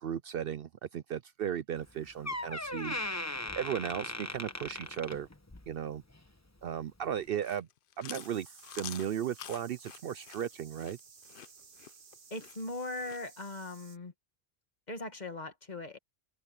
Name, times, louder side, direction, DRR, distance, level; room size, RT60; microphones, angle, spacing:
voice 1, 0.0-3.0 3.6-5.3 5.7-6.0 6.6-7.7 8.0-11.0, right 9 dB, 65° right, 0.7 m, -36 dB
Door, 1.8-1.9 2.2-5.7 6.1-6.4 7.1-7.2, left 1 dB, 15° left, 1.1 m, -38 dB
Chewing mastication, 7.2-13.2, left 10 dB, 60° left, 0.7 m, -48 dB
sound 1, 8.2-14.0, right 5 dB, 80° right, 1.7 m, -56 dB
voice 2, 12.3-14.1 14.9-16.0, left 2 dB, 40° left, 1.8 m, -39 dB
open air
omnidirectional pair, 1.2 m